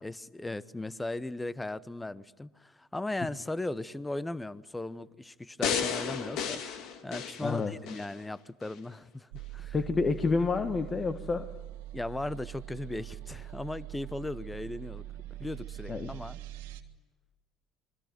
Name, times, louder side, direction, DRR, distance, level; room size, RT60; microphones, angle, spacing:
voice 1, 0.0-6.6 7.0-9.8 11.9-15.0 15.4-16.4, left 2 dB, 10° left, 1.0 m, -37 dB
sound 1, 5.6-8.1 8.6-8.7, left 7 dB, 65° left, 2.2 m, -33 dB
voice 2, 7.4-7.7 9.7-11.5 15.9-16.1, left 4 dB, 30° left, 1.5 m, -28 dB
sound 2, 9.3-16.8, right 14 dB, 80° right, 1.6 m, -43 dB
28.0 x 21.5 x 9.3 m
hypercardioid pair, 70°, 0 cm